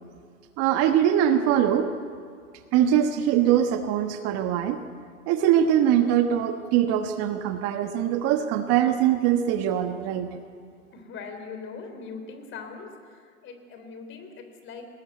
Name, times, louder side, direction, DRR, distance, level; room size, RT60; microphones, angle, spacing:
voice 1, 0.6-1.9 2.7-4.8 5.3-10.3, right 10 dB, 35° right, 7 dB, 1.2 m, -22 dB
voice 2, 10.9-14.9, left 5 dB, 30° left, 6 dB, 3.4 m, -41 dB
20.0 x 18.5 x 9.3 m, 2.1 s
hypercardioid pair, 115°, 42 cm